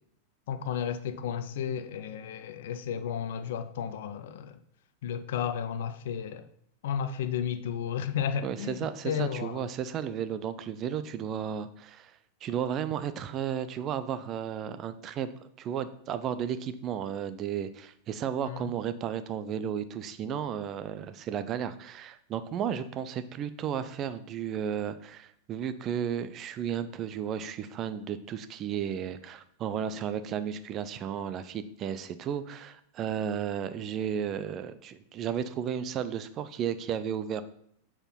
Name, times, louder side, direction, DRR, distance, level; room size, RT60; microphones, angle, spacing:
voice 1, 0.5-4.6 5.0-6.5 6.8-8.8 9.0-9.7 18.4-18.7, left 8 dB, 55° left, 0.5 m, -33 dB
voice 2, 8.4-37.4, right 8 dB, 30° right, 0.5 m, -34 dB
6.7 x 4.4 x 5.7 m
figure-of-eight pair, 90°, 0 cm